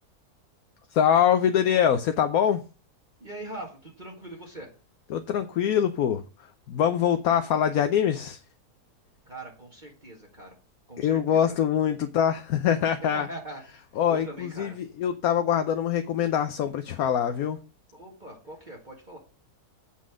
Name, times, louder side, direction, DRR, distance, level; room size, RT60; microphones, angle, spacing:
voice 1, 0.9-2.6 5.1-6.2 6.7-8.4 11.0-13.3 14.0-17.6, left 9 dB, 70° left, 1.2 m, -24 dB
voice 2, 3.2-4.7 9.3-10.6 10.9-11.5 13.0-13.8 14.1-14.8 17.9-19.2, right 1 dB, 30° right, 2.0 m, -41 dB
8.4 x 5.6 x 6.3 m
omnidirectional pair, 1.7 m